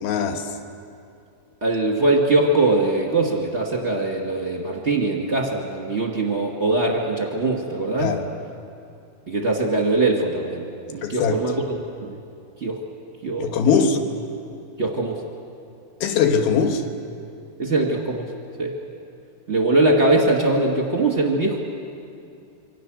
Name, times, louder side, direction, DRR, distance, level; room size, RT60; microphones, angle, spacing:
voice 1, 0.0-0.5 8.0-8.3 11.0-11.4 13.4-14.0 16.0-16.8, left 6 dB, 85° left, 5 dB, 3.3 m, -21 dB
voice 2, 1.6-8.1 9.3-11.6 12.0-12.2 12.6-12.8 13.2-13.9 14.8-15.2 17.6-18.3 18.6-18.8 19.5-21.6, right 2 dB, 25° right, -1 dB, 1.8 m, -22 dB
27.5 x 25.0 x 6.4 m, 2.6 s
omnidirectional pair, 4.2 m